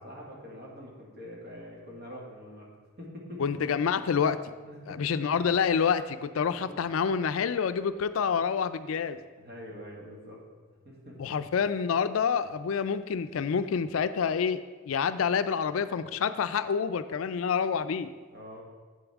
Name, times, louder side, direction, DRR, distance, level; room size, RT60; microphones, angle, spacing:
voice 1, 0.0-3.4 4.6-5.0 6.5-6.6 9.4-10.4 10.7-11.4 18.3-18.6, equal, 50° right, -2 dB, 1.8 m, -45 dB
voice 2, 3.4-4.4 4.9-9.2 11.2-18.1, left 6 dB, 75° left, 12 dB, 0.4 m, -28 dB
8.5 x 7.0 x 3.5 m, 1.4 s
head